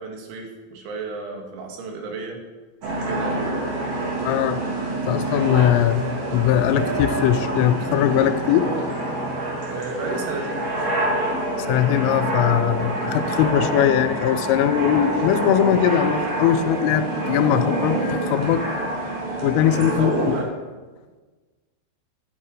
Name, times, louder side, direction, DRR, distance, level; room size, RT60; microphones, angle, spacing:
voice 1, 0.0-2.4 3.0-3.4 9.7-10.7 19.8-20.5, right 3 dB, 70° right, 2 dB, 4.1 m, -33 dB
sound 1, 2.8-20.4, right 2 dB, 40° right, 2.9 m, -26 dB
voice 2, 4.2-4.6 5.1-6.0 6.3-8.7 11.7-18.7 19.4-20.3, left 11 dB, 85° left, 12 dB, 3.3 m, -20 dB
15.0 x 9.8 x 4.9 m, 1.3 s
omnidirectional pair, 5.7 m